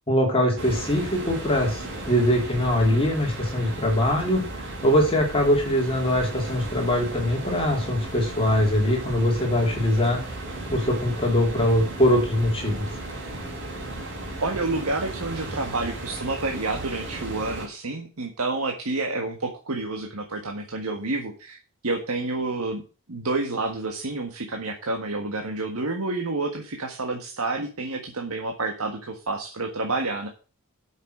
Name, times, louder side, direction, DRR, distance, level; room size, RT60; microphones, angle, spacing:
voice 1, 0.1-1.8 2.1-4.4 4.8-10.2 10.7-12.9, left 1 dB, 25° left, 0 dB, 3.0 m, -22 dB
sound 1, 0.6-17.7, right 1 dB, 55° right, 4.1 m, -35 dB
voice 2, 14.4-21.6 21.8-22.8 23.1-30.3, right 3 dB, 80° right, 2 dB, 1.6 m, -29 dB
8.0 x 6.5 x 6.5 m, 0.36 s
head